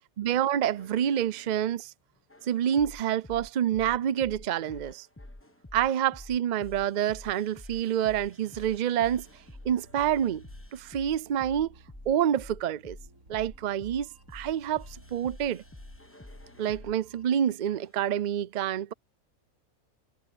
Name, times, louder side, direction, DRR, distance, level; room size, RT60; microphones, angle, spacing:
voice 1, 0.2-1.9 2.5-5.1 5.7-9.3 9.6-10.4 10.7-11.7 12.1-13.0 13.3-15.6 16.6-18.9, right 10 dB, 90° right, 0.4 m, -27 dB
sound 1, 0.6-1.6 2.3-17.0 17.7-18.0, left 1 dB, 10° left, 1.0 m, -48 dB
sound 2, 9.2-17.3, right 1 dB, 75° right, 5.3 m, -56 dB
omnidirectional pair, 1.5 m